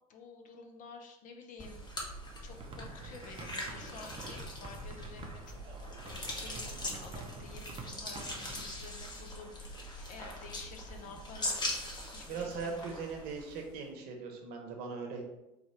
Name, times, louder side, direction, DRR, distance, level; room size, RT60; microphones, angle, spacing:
voice 1, 0.1-1.8 2.4-5.6 6.2-11.7 12.1-12.9, left 4 dB, 45° left, 3 dB, 0.7 m, -51 dB
sound 1, 1.6-13.8, left 1 dB, 20° left, 1.1 m, -41 dB
sound 2, 2.5-8.6, right 3 dB, 25° right, 0.7 m, -48 dB
voice 2, 12.3-15.2, right 4 dB, 55° right, 2 dB, 0.9 m, -39 dB
4.2 x 2.5 x 4.3 m, 0.93 s
figure-of-eight pair, 65°, 19 cm